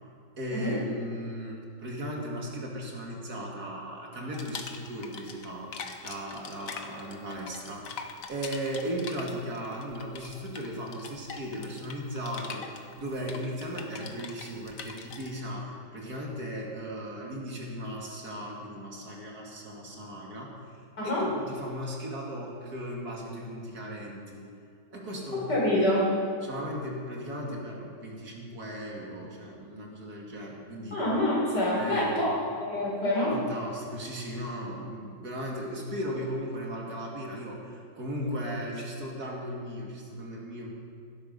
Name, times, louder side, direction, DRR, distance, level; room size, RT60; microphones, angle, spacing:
voice 1, 0.4-20.6 21.0-24.4 24.9-25.5 26.4-31.0 31.7-32.3 33.3-40.7, equal, 60° right, -1 dB, 2.8 m, -37 dB
sound 1, 4.3-5.5 5.7-15.3, left 5 dB, 55° left, 1.4 m, -42 dB
voice 2, 25.5-26.1 30.9-33.4, left 1 dB, 75° left, -5 dB, 5.1 m, -26 dB
17.0 x 12.0 x 5.5 m, 2.3 s
omnidirectional pair, 1.8 m